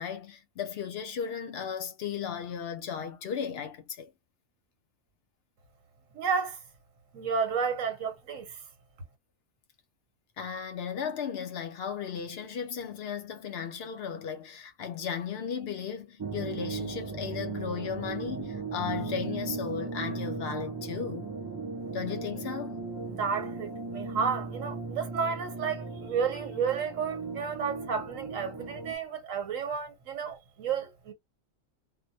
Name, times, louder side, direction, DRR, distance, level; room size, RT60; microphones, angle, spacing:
voice 1, 0.0-4.1 10.4-21.3 21.9-22.8, left 7 dB, 60° left, 0.8 m, -35 dB
voice 2, 6.1-6.6 7.1-8.6 23.1-31.1, right 6 dB, 80° right, 1.2 m, -32 dB
sound 1, 16.2-29.0, right 4 dB, 35° right, 0.4 m, -37 dB
2.3 x 2.1 x 2.6 m
omnidirectional pair, 1.4 m